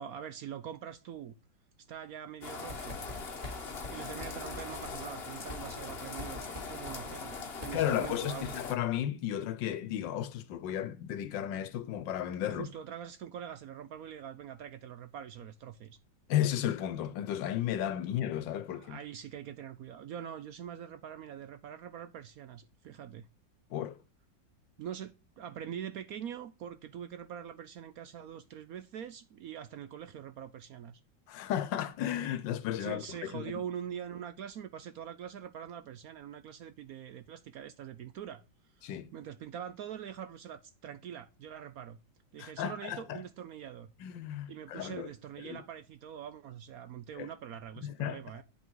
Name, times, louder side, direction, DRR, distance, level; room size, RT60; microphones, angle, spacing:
voice 1, 0.0-1.3 1.9-3.1 3.4-6.4 6.7-8.6 12.5-16.0 18.7-23.3 24.8-31.0 32.8-38.4 38.8-42.0 42.3-43.9 44.5-48.4, right 9 dB, 70° right, 0.9 m, -44 dB
sound 1, 2.4-8.7, left 4 dB, 40° left, 1.1 m, -41 dB
Writing, 2.7-8.7, left 1 dB, 20° right, 3.1 m, -47 dB
voice 2, 7.7-12.7 16.3-19.0 23.7-24.0 31.3-33.6 38.8-39.1 42.4-43.2 44.0-45.1 45.4-45.6 47.2-47.3 47.8-48.2, left 11 dB, 80° left, 1.5 m, -34 dB
9.9 x 5.6 x 4.6 m
omnidirectional pair, 2.0 m